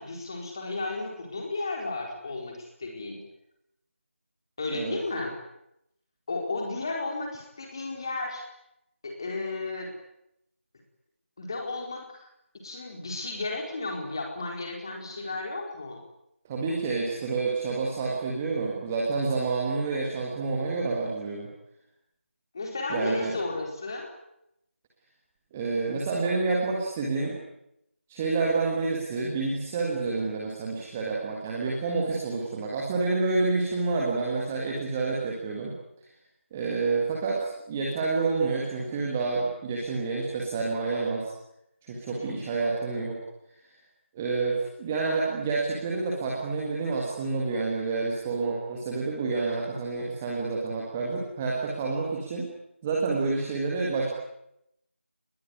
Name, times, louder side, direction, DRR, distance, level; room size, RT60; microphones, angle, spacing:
voice 1, 0.0-3.2 4.6-5.3 6.3-8.4 9.0-9.9 11.4-12.3 12.6-16.0 22.5-24.1 42.1-42.5, left 3 dB, 20° left, 1 dB, 4.4 m, -33 dB
voice 2, 16.4-21.5 22.9-23.3 25.5-27.3 28.1-35.7 36.5-41.3 41.8-43.2 44.1-52.5 52.8-54.1, right 4 dB, 5° right, -2 dB, 1.7 m, -28 dB
30.0 x 21.0 x 9.7 m, 0.82 s
figure-of-eight pair, 170°, 7 cm